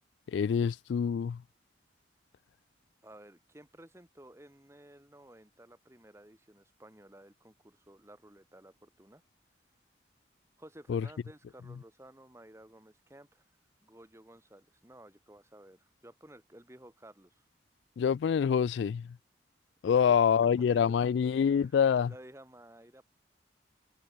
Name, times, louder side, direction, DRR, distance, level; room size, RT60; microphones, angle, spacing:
voice 1, 0.3-1.4 10.9-11.0 18.0-19.0 19.8-22.1, left 7 dB, 75° left, 0.3 m, -26 dB
voice 2, 3.0-9.2 10.6-13.5 13.8-17.4 19.9-20.2 20.4-21.7 22.1-23.0, right 1 dB, 15° right, 2.0 m, -55 dB
head